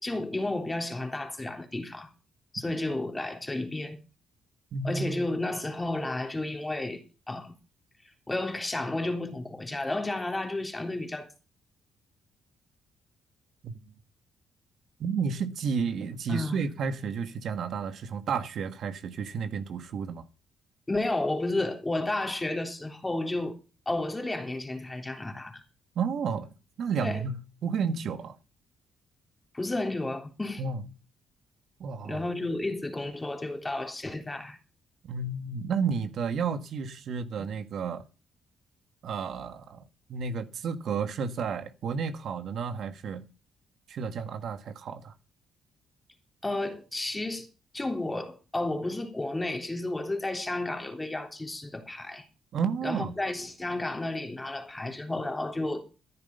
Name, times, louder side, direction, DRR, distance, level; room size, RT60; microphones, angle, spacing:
voice 1, 0.0-2.1 2.5-4.0 4.8-7.0 7.3-7.5 8.0-11.3 16.3-16.6 20.9-23.6 23.9-25.6 27.0-27.2 29.5-30.6 32.0-34.6 46.4-47.5 47.7-52.3 52.8-55.9, left 2 dB, 15° left, 3.5 m, -32 dB
voice 2, 4.7-5.2 13.6-13.7 15.0-20.2 25.9-28.4 30.6-30.8 31.8-32.2 35.0-38.0 39.0-39.8 40.1-43.3 43.9-45.1 52.5-53.2, right 5 dB, 65° right, 1.6 m, -32 dB
14.0 x 10.5 x 5.4 m
cardioid pair, 90°, 0 cm